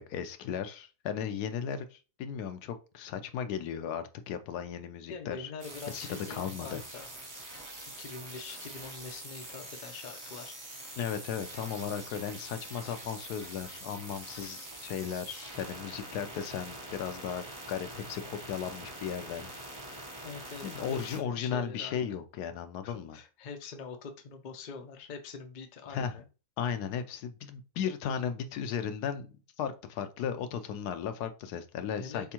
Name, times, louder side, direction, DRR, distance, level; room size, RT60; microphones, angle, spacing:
voice 1, 0.0-5.5 5.9-6.8 11.0-19.5 20.6-23.2 25.9-26.2 26.6-29.3 29.6-32.3, left 8 dB, 80° left, 1.1 m, -36 dB
voice 2, 5.1-7.1 8.0-10.5 20.2-22.2 22.8-26.2 32.0-32.3, left 5 dB, 65° left, 0.4 m, -44 dB
sound 1, 5.6-21.2, right 1 dB, 15° right, 0.6 m, -45 dB
4.2 x 3.5 x 2.9 m
omnidirectional pair, 1.7 m